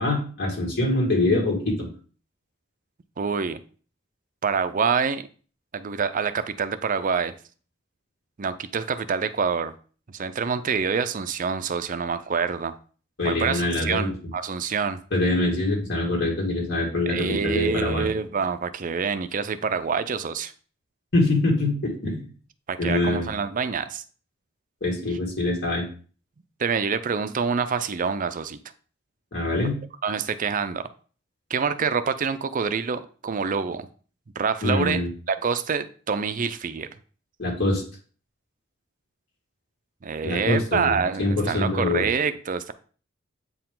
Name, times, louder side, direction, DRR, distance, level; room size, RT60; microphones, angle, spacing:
voice 1, 0.0-1.9 13.2-14.1 15.1-18.1 21.1-22.3 22.8-23.3 24.8-25.8 29.3-29.8 34.6-35.1 37.4-37.8 40.2-42.0, left 2 dB, 60° left, 2.1 m, -24 dB
voice 2, 3.2-3.6 4.4-5.3 5.7-7.3 8.4-9.7 10.1-12.7 13.2-15.0 17.1-20.5 22.7-24.0 26.6-28.6 30.0-30.9 31.5-33.9 34.4-36.9 40.0-42.7, right 6 dB, 40° right, 0.5 m, -26 dB
8.4 x 4.7 x 3.8 m
head